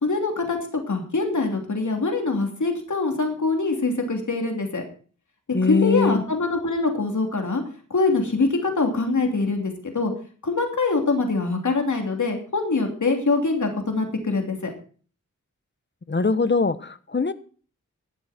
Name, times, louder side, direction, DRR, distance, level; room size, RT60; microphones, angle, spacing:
voice 1, 0.0-0.6 0.9-4.8 5.7-7.6 7.9-10.1 10.4-14.7, left 3 dB, 65° left, 3 dB, 3.0 m, -24 dB
voice 2, 5.5-6.2 16.1-17.3, left 4 dB, 35° left, 13 dB, 1.0 m, -22 dB
14.0 x 12.0 x 4.3 m, 0.41 s
wide cardioid pair, 90°, 31 cm